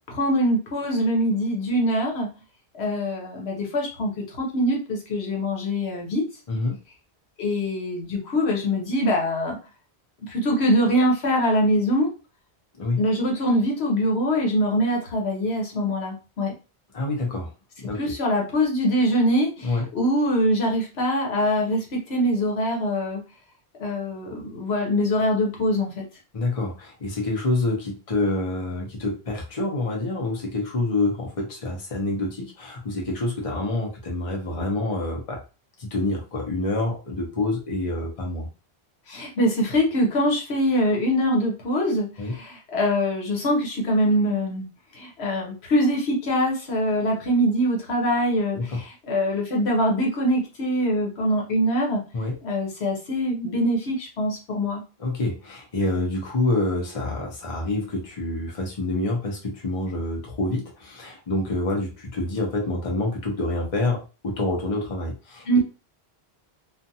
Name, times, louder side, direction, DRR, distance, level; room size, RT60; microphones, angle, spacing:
voice 1, 0.1-2.3 2.7-6.2 7.4-9.6 10.2-12.1 13.0-16.5 18.0-23.2 23.8-26.0 39.1-44.7 44.9-52.0 52.4-54.8 65.5-65.6, equal, 80° left, 0 dB, 1.1 m, -23 dB
voice 2, 16.9-17.5 17.8-18.0 19.6-19.9 26.3-35.4 35.8-38.5 42.2-42.3 48.5-48.9 52.1-52.4 55.0-65.6, left 2 dB, 35° left, 0 dB, 0.8 m, -27 dB
2.5 x 2.4 x 2.7 m, 0.32 s
omnidirectional pair, 1.1 m